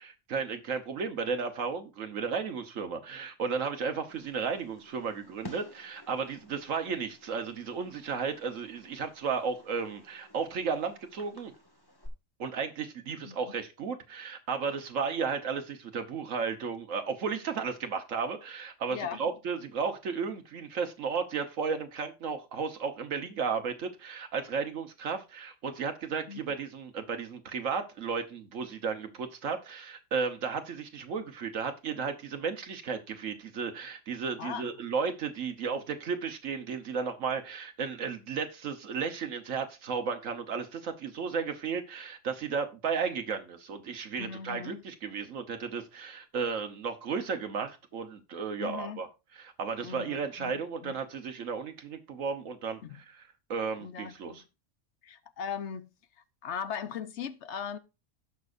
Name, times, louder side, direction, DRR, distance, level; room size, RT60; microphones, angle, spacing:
voice 1, 0.0-11.5 12.4-49.1 49.3-54.4, right 5 dB, 85° right, 1.5 m, -34 dB
Fireworks, 4.1-12.1, left 1 dB, 15° left, 1.8 m, -53 dB
voice 2, 13.2-13.6 18.9-19.2 26.3-26.4 34.4-34.7 44.2-44.8 48.6-49.0 49.8-51.0 52.8-53.0 53.8-54.4 55.0-55.9 56.4-57.8, left 7 dB, 65° left, 1.1 m, -39 dB
17.5 x 6.1 x 2.6 m
omnidirectional pair, 1.3 m